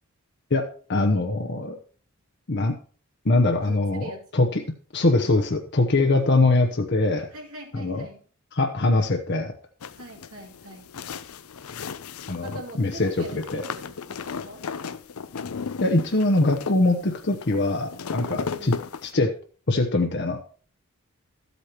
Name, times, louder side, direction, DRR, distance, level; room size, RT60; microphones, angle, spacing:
voice 1, 0.5-1.8 2.5-2.8 3.2-4.6 4.9-7.3 7.7-8.0 8.5-9.5 12.3-13.6 15.8-18.8 19.0-19.4 19.7-20.4, left 2 dB, 55° left, 3 dB, 0.9 m, -23 dB
voice 2, 3.6-4.4 7.3-8.2 9.9-10.9 12.4-14.6 18.3-18.8, right 1 dB, 85° right, 0 dB, 2.7 m, -42 dB
sound 1, 9.8-19.1, left 5 dB, 85° left, 0.6 m, -35 dB
13.0 x 8.2 x 3.0 m, 0.42 s
head